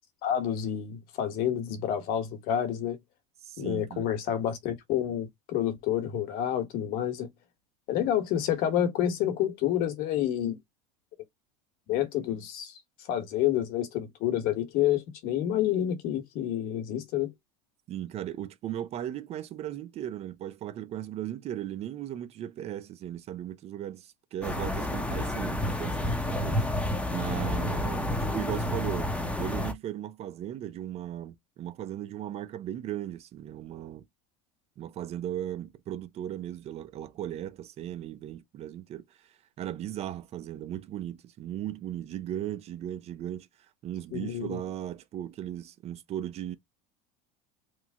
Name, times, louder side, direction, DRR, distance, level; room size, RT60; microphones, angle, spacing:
voice 1, 0.2-3.0 3.6-7.3 7.9-10.6 11.9-12.8 13.1-17.3 44.1-44.6, left 10 dB, 55° left, 1.0 m, -29 dB
voice 2, 3.4-4.1 17.9-26.6 27.1-29.1 29.4-34.0 34.8-43.5 43.8-46.6, right 11 dB, 35° right, 0.4 m, -37 dB
sound 1, 24.4-29.7, left 1 dB, 5° left, 0.6 m, -30 dB
3.0 x 2.0 x 3.4 m
supercardioid pair, 135°, 18 cm